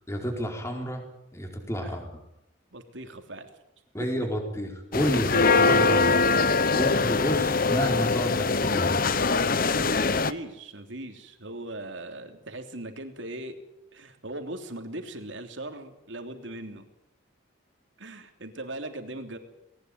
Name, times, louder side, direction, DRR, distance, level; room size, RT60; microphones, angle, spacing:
voice 1, 0.1-1.0 1.3-2.2 3.9-6.1 6.7-9.0, equal, 15° left, 2 dB, 4.5 m, -30 dB
voice 2, 2.7-3.5 4.0-4.1 5.3-5.4 6.7-7.1 9.6-13.6 13.9-16.9 18.0-19.4, right 1 dB, 70° right, 6 dB, 3.2 m, -39 dB
sound 1, 4.9-10.3, left 4 dB, 45° left, 1.0 m, -23 dB
19.5 x 19.0 x 9.3 m, 0.80 s
head